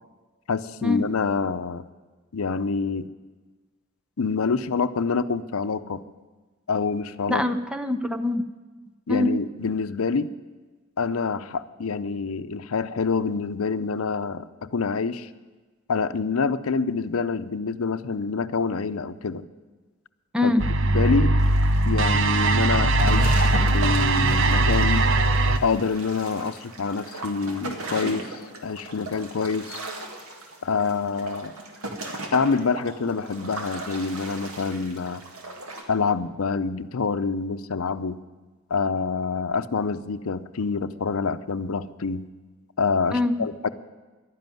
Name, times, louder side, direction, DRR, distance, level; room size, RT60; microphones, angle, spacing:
voice 1, 0.5-1.8 2.3-3.1 4.2-6.0 6.7-7.4 9.1-10.3 11.0-15.3 15.9-19.4 20.4-20.5 20.9-21.3 21.8-25.0 25.6-28.3 28.6-29.8 30.6-31.5 32.3-35.2 35.9-38.2 38.7-42.2 42.8-43.7, left 5 dB, 80° left, 12 dB, 0.6 m, -26 dB
voice 2, 7.3-8.5 9.1-9.3 20.3-20.7 43.1-43.5, left 2 dB, 5° right, 9 dB, 0.5 m, -23 dB
sound 1, 20.6-25.6, right 2 dB, 60° right, 0.7 m, -20 dB
sound 2, 21.4-35.8, right 2 dB, 90° right, 2.0 m, -37 dB
11.5 x 10.5 x 9.2 m, 1.3 s
head